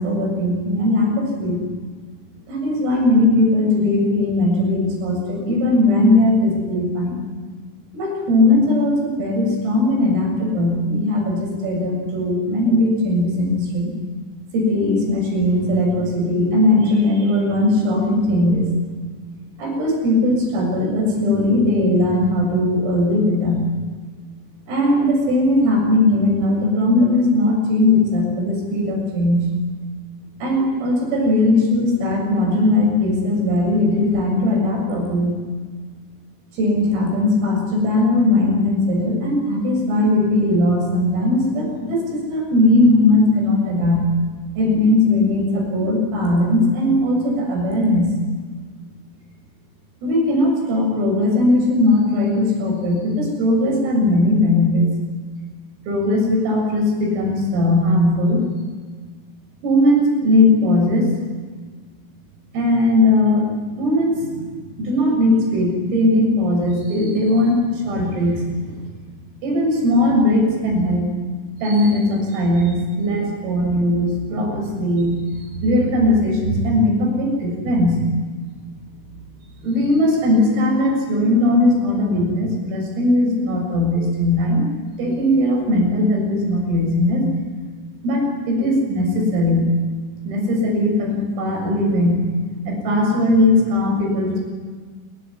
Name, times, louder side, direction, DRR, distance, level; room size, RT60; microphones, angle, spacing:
voice 1, 0.0-1.6 2.5-7.2 7.9-13.9 14.5-18.7 19.6-23.7 24.7-29.4 30.4-35.3 36.5-44.1 44.6-48.1 50.0-54.9 55.9-58.4 59.6-61.1 62.5-63.5 63.8-64.5 64.8-68.8 69.4-71.1 71.6-78.0 78.3-78.5 79.6-84.7 85.0-87.3 88.0-89.7 90.3-92.3 92.7-94.4, left 1 dB, 85° right, 1 dB, 9.8 m, -19 dB
27.5 x 23.0 x 8.9 m, 1.5 s
omnidirectional pair, 5.8 m